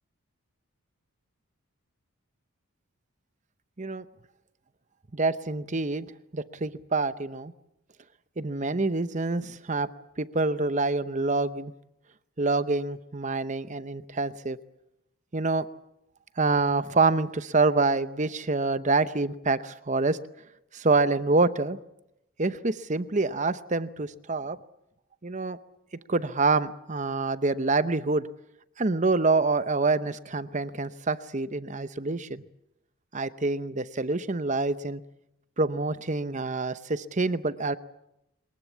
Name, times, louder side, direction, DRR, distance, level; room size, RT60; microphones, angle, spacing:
voice 1, 5.1-6.1 6.3-7.5 8.4-9.9 10.2-11.7 12.4-14.6 15.3-15.6 16.4-20.2 20.7-21.8 22.4-24.6 25.2-25.6 26.1-28.3 28.8-32.4 33.1-35.0 35.6-37.8, right 3 dB, 35° right, 13 dB, 0.8 m, -26 dB
22.5 x 20.5 x 8.4 m, 0.85 s
head